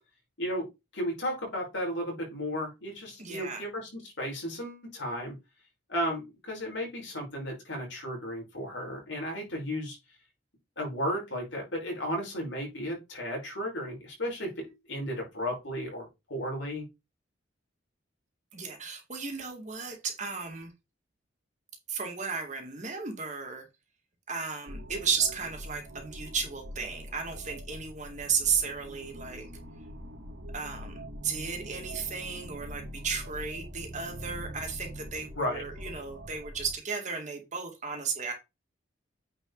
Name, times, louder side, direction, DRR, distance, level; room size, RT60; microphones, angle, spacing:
voice 1, 0.9-5.3 5.9-10.0 10.8-14.5 14.9-16.9 35.4-35.6, equal, 65° left, -1 dB, 5.3 m, -34 dB
voice 2, 3.2-3.7 18.5-20.7 21.9-23.7 24.3-29.5 30.5-38.3, right 5 dB, 35° right, 3 dB, 2.2 m, -34 dB
sound 1, 24.7-36.7, equal, 70° right, 2.5 m, -43 dB
8.9 x 5.0 x 4.0 m, 0.24 s
head